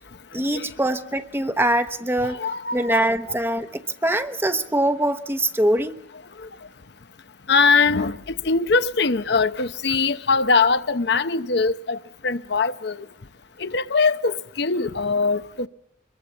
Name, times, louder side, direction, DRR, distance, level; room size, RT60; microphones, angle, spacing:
voice 1, 0.3-2.4 2.7-3.7 4.0-5.9, right 1 dB, 10° right, 1.0 m, -23 dB
voice 2, 2.2-3.0 7.5-12.0 12.2-13.0 13.6-15.7, left 4 dB, 60° left, 0.8 m, -22 dB
25.0 x 22.0 x 7.1 m
head